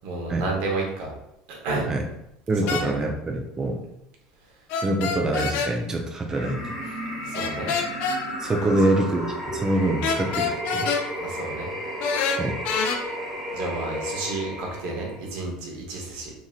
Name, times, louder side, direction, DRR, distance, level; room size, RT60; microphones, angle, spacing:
voice 1, 0.0-1.1 1.5-1.8 2.6-2.9 7.2-7.7 8.6-8.7 11.2-11.7 13.5-16.3, right 3 dB, 70° right, 0 dB, 0.9 m, -31 dB
voice 2, 2.5-3.8 4.8-6.7 8.4-10.9 12.4-12.6, right 1 dB, 20° right, 2 dB, 0.4 m, -25 dB
sound 1, 2.7-2.9 4.7-5.7 7.3-8.2 10.0-11.0 12.0-13.0, left 5 dB, 65° left, 0.4 m, -26 dB
sound 2, 6.3-15.3, equal, 5° right, 1.0 m, -33 dB
2.9 x 2.7 x 2.3 m, 0.83 s
supercardioid pair, 105°, 3 cm